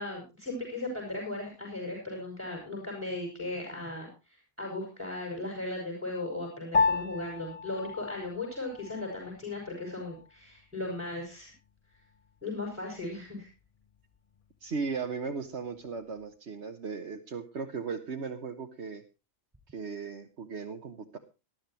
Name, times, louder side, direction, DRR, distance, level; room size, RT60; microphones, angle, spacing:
voice 1, 0.0-4.1 4.6-11.5 12.4-13.5, left 2 dB, 10° right, 0 dB, 6.1 m, -37 dB
Piano, 6.7-16.4, left 4 dB, 35° left, 0.7 m, -36 dB
voice 2, 14.6-19.0 19.7-21.2, right 5 dB, 60° right, 3 dB, 1.4 m, -37 dB
20.0 x 12.0 x 3.0 m, 0.29 s
omnidirectional pair, 1.3 m